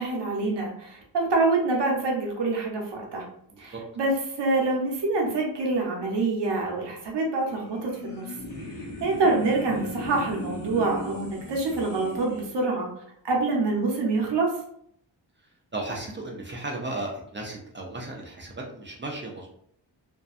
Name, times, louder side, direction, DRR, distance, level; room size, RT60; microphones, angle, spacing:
voice 1, 0.0-3.2 3.6-4.1 4.4-8.2 9.0-12.9 13.2-14.5, right 3 dB, 65° right, -1 dB, 0.8 m, -26 dB
sound 1, 7.6-12.4, left 1 dB, 50° left, 0.9 m, -37 dB
voice 2, 15.7-19.5, right 2 dB, 25° right, -1 dB, 0.4 m, -35 dB
2.6 x 2.2 x 2.3 m, 0.69 s
wide cardioid pair, 125°, 44 cm